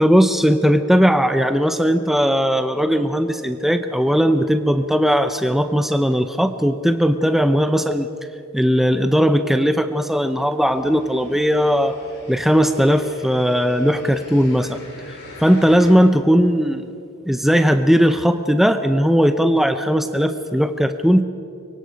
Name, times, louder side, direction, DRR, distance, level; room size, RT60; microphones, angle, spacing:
voice 1, 0.0-8.1 8.5-12.0 12.3-14.8 15.4-16.9 17.3-21.2, equal, ahead, 9 dB, 0.6 m, -18 dB
sound 1, 10.6-15.9, left 2 dB, 55° left, 5.1 m, -43 dB
24.5 x 23.5 x 5.2 m, 2.6 s
head